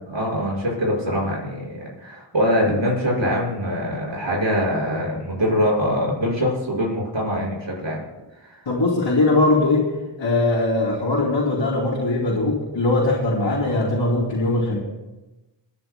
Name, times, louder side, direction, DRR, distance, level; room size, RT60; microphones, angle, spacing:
voice 1, 0.1-8.0 8.4-8.6, equal, 70° right, -3 dB, 5.6 m, -23 dB
voice 2, 8.7-9.9 10.2-14.8, left 2 dB, 75° left, -8 dB, 2.8 m, -20 dB
29.5 x 10.0 x 2.2 m, 1.1 s
cardioid pair, 40°, 46 cm